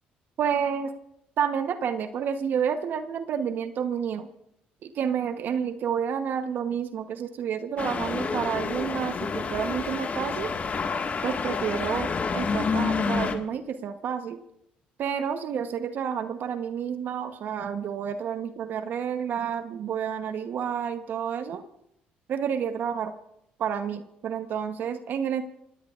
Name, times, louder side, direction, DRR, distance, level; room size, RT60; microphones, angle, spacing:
voice 1, 0.4-0.9 1.4-4.3 4.8-10.5 11.2-14.4 15.0-21.6 22.3-23.1 23.6-25.4, right 7 dB, 60° right, 9 dB, 1.0 m, -30 dB
sound 1, 7.8-13.3, left 5 dB, 40° left, 1.7 m, -29 dB
26.5 x 17.5 x 2.5 m, 0.77 s
supercardioid pair, 75°, 4 cm